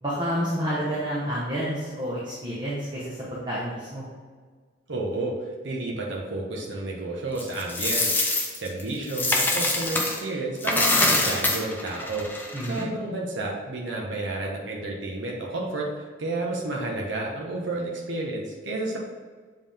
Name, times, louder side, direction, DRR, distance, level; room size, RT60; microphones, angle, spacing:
voice 1, 0.0-4.0 12.5-12.8, equal, 25° right, -8 dB, 1.1 m, -29 dB
voice 2, 4.9-5.3 5.6-12.3 12.7-19.0, right 2 dB, 75° right, -2 dB, 1.0 m, -31 dB
Coin (dropping), 7.4-10.2 10.6-12.8, left 2 dB, 10° left, 0.6 m, -25 dB
7.5 x 3.7 x 3.5 m, 1.5 s
head